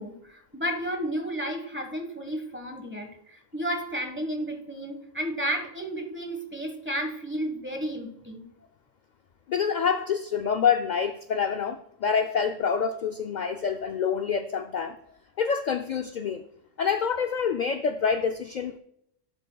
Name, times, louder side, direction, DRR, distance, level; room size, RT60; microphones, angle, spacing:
voice 1, 0.0-8.4, right 1 dB, 10° right, 3 dB, 1.2 m, -32 dB
voice 2, 9.5-15.0 15.4-16.4 16.8-18.8, left 6 dB, 65° left, 7 dB, 0.4 m, -27 dB
12.5 x 8.1 x 2.3 m, 0.73 s
omnidirectional pair, 1.3 m